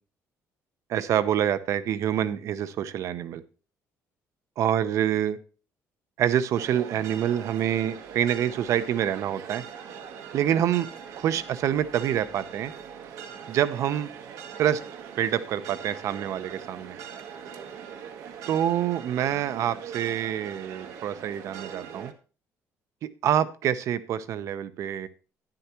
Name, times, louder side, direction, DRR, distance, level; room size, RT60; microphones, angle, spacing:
voice 1, 0.9-3.4 4.6-5.4 6.2-9.6 10.3-10.9 11.2-12.7 13.5-14.1 14.6-14.8 15.2-17.0 18.5-22.1 23.0-25.1, right 10 dB, 60° right, 13 dB, 0.8 m, -26 dB
sound 1, 6.5-22.1, right 7 dB, 80° right, 1.3 m, -42 dB
11.5 x 10.0 x 3.0 m, 0.37 s
cardioid pair, 155°, 6 cm